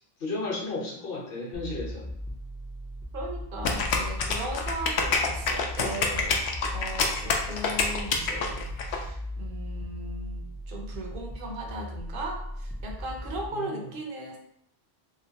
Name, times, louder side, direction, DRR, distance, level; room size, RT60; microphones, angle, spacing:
voice 1, 0.2-2.0 13.5-13.9, left 2 dB, 60° left, -3 dB, 1.0 m, -33 dB
sound 1, 1.5-13.5, left 1 dB, 15° left, 0.3 m, -38 dB
voice 2, 3.1-14.4, right 1 dB, 60° right, 1 dB, 0.8 m, -38 dB
sound 2, 3.6-9.0, left 4 dB, 90° left, 0.8 m, -27 dB
3.0 x 2.9 x 2.8 m, 0.73 s
omnidirectional pair, 1.1 m